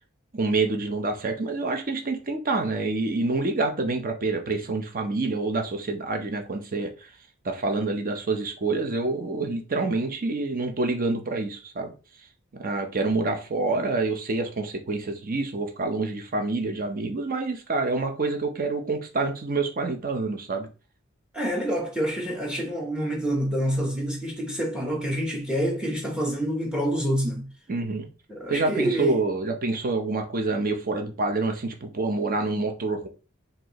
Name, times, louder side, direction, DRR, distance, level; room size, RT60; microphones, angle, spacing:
voice 1, 0.3-7.1 7.4-11.9 12.5-20.7 27.7-28.1 28.5-33.1, right 3 dB, 40° right, 0.7 m, -27 dB
voice 2, 21.3-27.5 28.3-29.2, equal, 5° right, 0.9 m, -27 dB
4.4 x 2.7 x 3.0 m
head